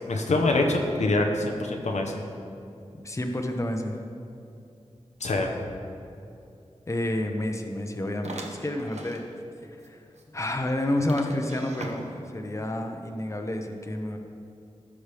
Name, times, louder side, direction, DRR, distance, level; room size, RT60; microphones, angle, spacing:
voice 1, 0.1-2.2 5.2-5.5, left 2 dB, 85° left, 2 dB, 0.9 m, -25 dB
voice 2, 2.9-4.0 6.9-9.2 9.6-10.0 10.3-14.2, left 1 dB, 25° left, 3 dB, 0.8 m, -30 dB
sound 1, 8.2-9.3 9.8-9.9 10.2-10.3 11.1-12.4, right 2 dB, 75° right, 0.9 m, -40 dB
15.0 x 6.2 x 3.4 m, 2.7 s
wide cardioid pair, 65°, 11 cm